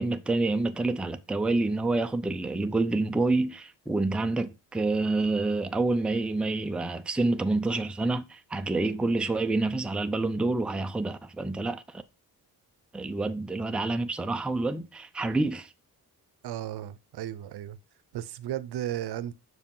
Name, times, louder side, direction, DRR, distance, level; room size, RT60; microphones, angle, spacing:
voice 1, 0.0-12.0 12.9-15.7, right 2 dB, 5° right, 0.4 m, -28 dB
voice 2, 16.4-17.8 18.1-19.3, right 12 dB, 75° right, 0.7 m, -34 dB
6.2 x 4.9 x 5.4 m
wide cardioid pair, 140°, 39 cm